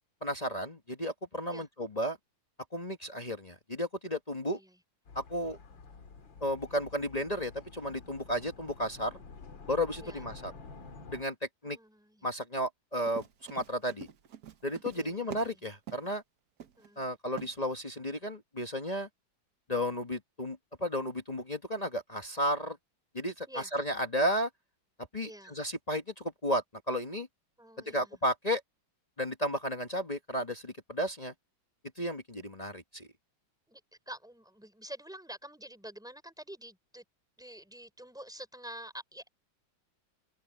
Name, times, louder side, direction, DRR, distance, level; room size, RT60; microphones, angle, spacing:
voice 1, 0.2-2.2 2.7-4.6 5.1-5.6 6.4-9.2 9.7-10.5 11.1-11.3 11.6-11.8 12.2-14.1 14.6-16.2 17.0-19.1 19.7-22.8 23.1-24.5 25.1-27.3 27.9-28.6 29.2-31.3 32.0-33.1, equal, 25° left, 1.3 m, -33 dB
voice 2, 4.5-4.8 10.0-10.3 11.6-12.3 14.9-15.6 16.8-17.1 23.5-23.7 25.2-25.6 27.6-28.2 33.7-33.8 34.1-37.0 37.4-39.3, right 1 dB, ahead, 4.5 m, -48 dB
sound 1, 5.1-11.2, left 4 dB, 80° left, 2.8 m, -49 dB
Run, 12.9-15.6 15.9-16.1 16.6-16.9 17.4-17.5, right 8 dB, 55° right, 1.5 m, -45 dB
omnidirectional pair, 2.0 m